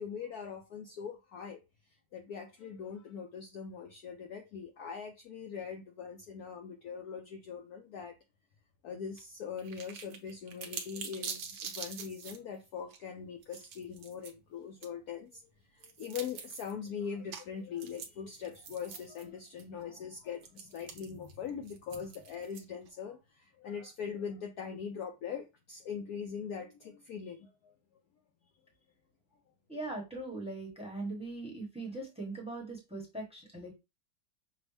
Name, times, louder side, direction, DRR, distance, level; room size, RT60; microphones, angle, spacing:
voice 1, 0.0-1.6 2.1-8.1 8.8-15.4 15.7-27.7, left 7 dB, 70° left, 0.9 m, -42 dB
sound 1, 9.2-9.3 9.6-12.4 12.9-13.0 13.4-14.3 14.8-14.9 15.8-16.7 17.3-17.4 17.8-19.2 19.6-19.7 20.4-22.9, right 6 dB, 65° right, 1.2 m, -44 dB
voice 2, 29.7-33.7, right 2 dB, 5° right, 0.9 m, -40 dB
6.1 x 2.0 x 3.3 m
omnidirectional pair, 2.1 m